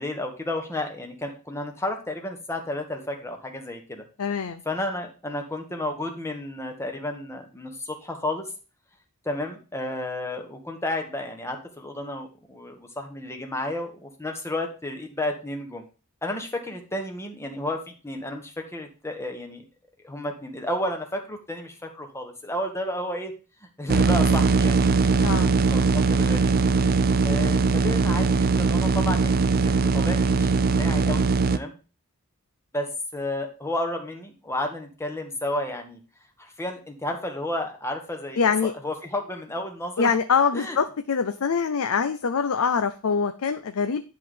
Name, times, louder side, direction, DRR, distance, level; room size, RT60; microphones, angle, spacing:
voice 1, 0.0-4.0 4.6-8.4 9.2-15.9 16.2-19.6 20.0-23.3 23.8-26.5 27.2-31.7 32.7-36.0 36.4-40.1 40.5-40.8, left 1 dB, 10° left, 3 dB, 1.4 m, -32 dB
voice 2, 4.2-4.6 25.2-25.5 38.4-38.7 40.0-44.0, left 6 dB, 70° left, 9 dB, 0.6 m, -24 dB
sound 1, 23.9-31.6, right 4 dB, 45° right, 0.5 m, -21 dB
10.5 x 3.9 x 5.0 m, 0.34 s
head